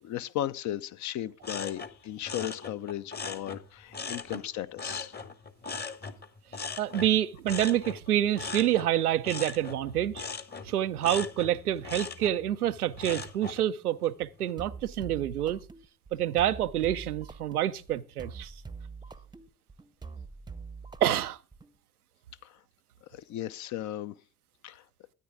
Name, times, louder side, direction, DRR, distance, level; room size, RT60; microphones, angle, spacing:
voice 1, 0.0-5.1 22.4-22.6 23.0-24.2 24.6-24.8, left 12 dB, 40° left, 0.6 m, -36 dB
sound 1, 1.4-4.5 4.8-13.6 14.0-14.5, left 4 dB, 20° left, 1.1 m, -40 dB
voice 2, 6.8-10.2 10.6-15.6 16.1-18.5 21.0-21.4, right 12 dB, 85° right, 0.6 m, -27 dB
sound 2, 14.6-21.7, right 4 dB, 10° right, 0.8 m, -44 dB
13.0 x 9.4 x 3.6 m
figure-of-eight pair, 60°, 44 cm